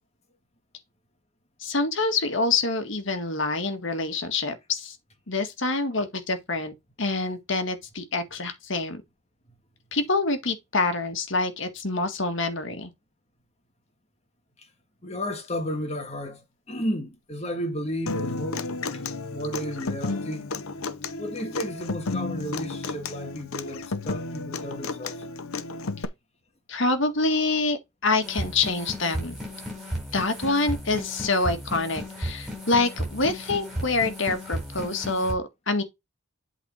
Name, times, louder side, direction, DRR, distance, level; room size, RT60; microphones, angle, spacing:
voice 1, 1.6-5.0 5.3-6.7 7.0-9.0 9.9-12.9 26.7-27.8 28.0-29.4 30.1-35.8, left 3 dB, 60° left, 1.8 m, -26 dB
voice 2, 15.0-18.7 18.9-19.0 19.3-20.5 21.2-25.2, equal, 30° left, 1.8 m, -33 dB
Human voice / Acoustic guitar, 18.1-26.0, left 3 dB, 80° left, 0.9 m, -32 dB
sound 1, 28.2-35.3, equal, ahead, 4.3 m, -34 dB
8.1 x 4.1 x 4.4 m
head